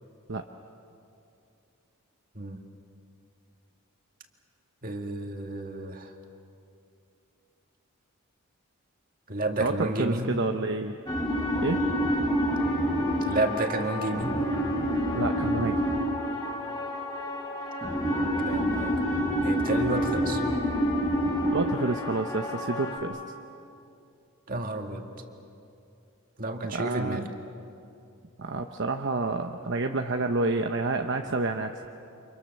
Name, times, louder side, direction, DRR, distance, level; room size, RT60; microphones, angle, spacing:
voice 1, 4.8-6.1 9.3-10.3 13.2-14.4 18.4-19.0 19.4-20.4 24.5-25.0 26.4-27.2, right 2 dB, 40° right, 3 dB, 2.0 m, -31 dB
voice 2, 9.6-11.0 11.6-11.8 15.1-15.8 21.5-23.2 26.7-27.3 28.4-31.7, right 3 dB, 55° right, 5 dB, 0.9 m, -29 dB
sound 1, 11.1-23.0, equal, 20° left, 3.4 m, -28 dB
30.0 x 27.0 x 6.7 m, 2.6 s
head